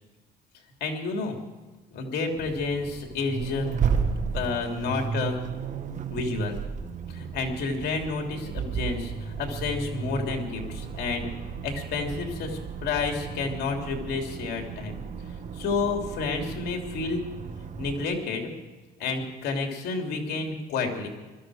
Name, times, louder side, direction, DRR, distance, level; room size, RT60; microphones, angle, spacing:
voice 1, 0.8-1.4 1.9-3.7 4.3-5.4 6.1-6.6 7.1-11.3 11.6-15.0 15.5-17.2 17.8-18.5 19.0-21.1, left 4 dB, 70° left, 3 dB, 3.2 m, -30 dB
Accelerating revving vroom, 2.3-18.1, right 6 dB, 45° right, 1.4 m, -34 dB
20.5 x 14.0 x 5.0 m, 1.2 s
cardioid pair, 110°, 17 cm